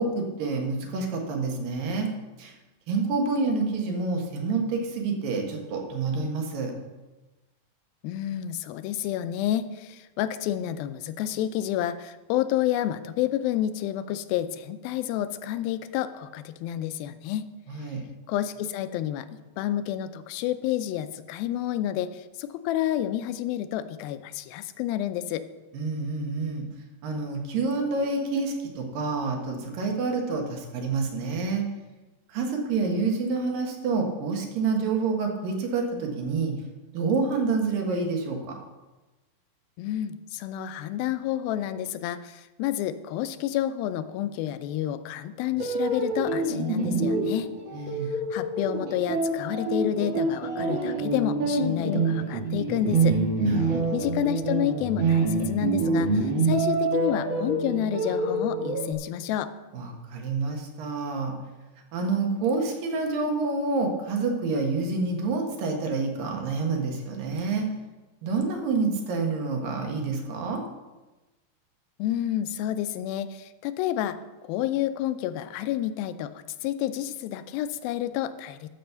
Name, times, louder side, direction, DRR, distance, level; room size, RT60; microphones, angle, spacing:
voice 1, 0.0-2.1 2.4-2.5 2.9-6.7 17.7-18.0 25.7-26.6 27.0-31.6 32.3-36.5 36.9-38.5 47.7-48.1 53.4-54.0 59.7-61.3 61.9-67.7 68.2-70.6, right 4 dB, 75° right, 2 dB, 3.2 m, -28 dB
voice 2, 8.0-17.5 18.3-25.5 39.8-47.5 48.1-53.2 53.4-59.5 72.0-74.2 74.4-78.7, left 12 dB, 85° left, 12 dB, 2.5 m, -29 dB
sound 1, 45.5-58.9, right 3 dB, 50° right, 1.5 m, -26 dB
12.5 x 5.3 x 6.9 m, 1.1 s
omnidirectional pair, 4.2 m